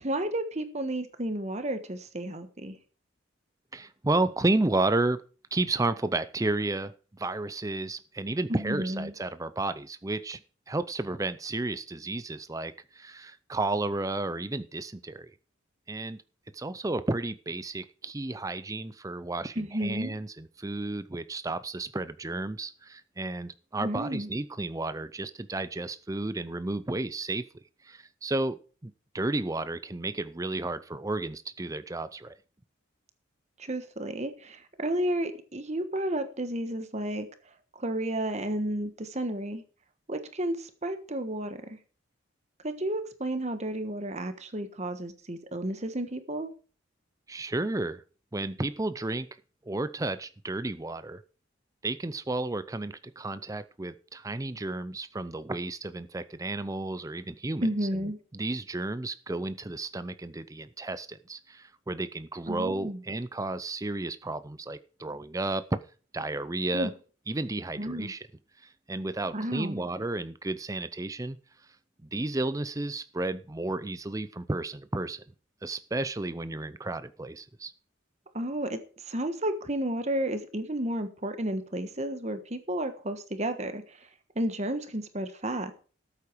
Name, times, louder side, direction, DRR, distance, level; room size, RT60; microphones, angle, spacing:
voice 1, 0.0-2.8 8.5-9.1 19.6-20.1 23.8-24.3 33.6-37.3 37.8-39.6 40.1-41.8 42.6-46.5 57.6-58.2 62.5-63.0 66.7-66.9 67.8-68.1 69.3-69.8 78.3-78.8 79.1-84.0 84.3-85.7, right 1 dB, 35° right, 9 dB, 1.3 m, -32 dB
voice 2, 3.7-5.2 5.5-10.4 10.7-15.3 15.9-16.2 16.5-27.5 27.8-32.4 47.3-48.0 48.3-49.3 49.6-51.2 51.8-65.7 66.1-66.9 67.3-68.3 68.6-71.4 72.1-75.2 75.6-77.7, right 2 dB, 15° right, 13 dB, 0.5 m, -32 dB
13.5 x 8.5 x 4.6 m, 0.38 s
head